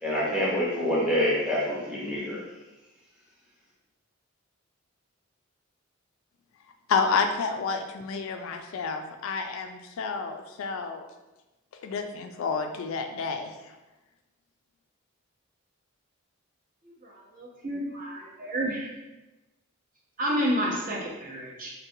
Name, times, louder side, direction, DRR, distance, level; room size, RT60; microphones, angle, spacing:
voice 1, 0.0-2.4, equal, 5° right, -7 dB, 0.7 m, -26 dB
voice 2, 6.9-11.1 11.8-13.7, left 5 dB, 70° left, 5 dB, 0.3 m, -30 dB
voice 3, 17.0-18.9 20.2-21.7, equal, 40° right, -4 dB, 0.6 m, -30 dB
3.8 x 2.1 x 2.6 m, 1.1 s
head